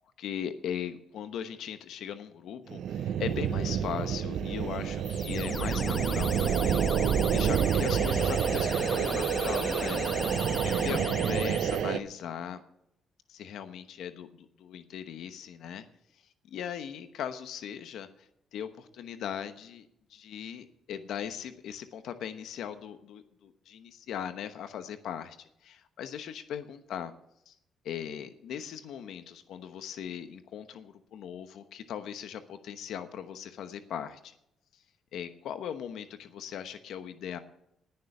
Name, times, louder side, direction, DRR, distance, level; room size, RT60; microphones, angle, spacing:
voice 1, 0.2-10.0 10.3-12.6 13.3-15.8 16.5-18.1 18.5-27.1 27.5-27.6 27.8-34.3 35.1-37.4, left 9 dB, 80° left, 10 dB, 1.0 m, -39 dB
sound 1, 2.7-12.0, right 9 dB, 70° right, 0.7 m, -28 dB
sound 2, 5.0-11.8, left 3 dB, 35° left, 1.2 m, -36 dB
19.5 x 6.8 x 6.7 m, 0.78 s
cardioid pair, 90°, 0 cm